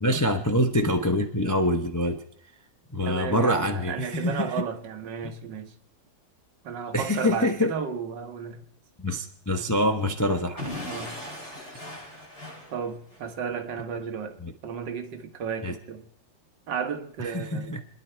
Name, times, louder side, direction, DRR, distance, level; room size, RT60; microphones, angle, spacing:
voice 1, 0.0-2.2 2.9-4.6 6.9-7.7 9.0-10.8 14.4-14.5 15.6-15.8 17.2-17.8, left 1 dB, 30° left, 0.3 m, -25 dB
voice 2, 3.0-5.8 6.6-8.6 10.9-11.2 12.7-16.1 16.7-17.7, right 6 dB, 65° right, 1.8 m, -33 dB
Explosion / Shatter, 10.6-13.3, left 1 dB, 55° left, 7.3 m, -38 dB
29.0 x 10.5 x 4.5 m
omnidirectional pair, 2.1 m